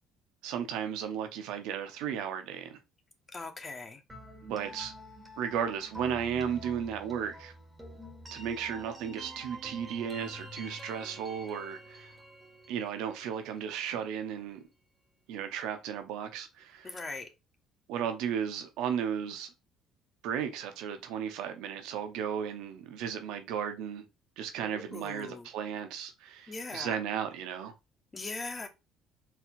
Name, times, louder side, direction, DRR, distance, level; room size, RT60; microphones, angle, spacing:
voice 1, 0.4-2.8 4.4-4.9 5.4-7.5 8.3-12.1 12.7-14.6 15.3-17.0 17.9-19.5 20.2-24.0 24.4-27.7, right 8 dB, 75° right, 0.6 m, -35 dB
voice 2, 3.3-4.0 16.8-17.3 24.6-25.5 26.5-27.0 28.1-28.7, left 3 dB, 30° left, 1.0 m, -40 dB
sound 1, 4.1-13.9, right 1 dB, 20° right, 1.5 m, -47 dB
4.4 x 3.5 x 2.4 m
supercardioid pair, 65°, 0 cm